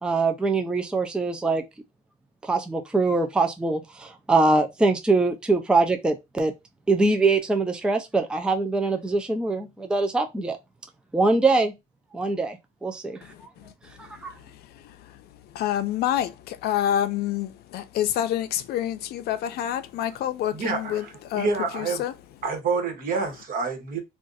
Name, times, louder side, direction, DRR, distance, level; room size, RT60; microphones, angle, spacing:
voice 1, 0.0-1.6 2.4-6.5 6.9-10.6 11.1-11.7 12.1-13.5 14.0-14.3, right 3 dB, 5° right, 0.4 m, -23 dB
voice 2, 13.2-21.5 21.7-22.1, left 11 dB, 70° left, 0.5 m, -28 dB
voice 3, 20.5-22.0 22.4-24.0, right 4 dB, 55° right, 1.2 m, -28 dB
2.5 x 2.4 x 3.8 m
cardioid pair, 110°, 17 cm